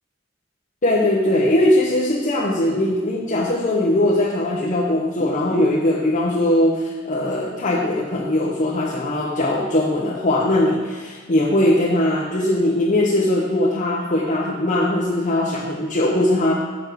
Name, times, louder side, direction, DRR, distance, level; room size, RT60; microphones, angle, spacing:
voice 1, 0.8-16.5, left 1 dB, 40° left, -4 dB, 0.9 m, -20 dB
6.9 x 6.2 x 6.2 m, 1.4 s
head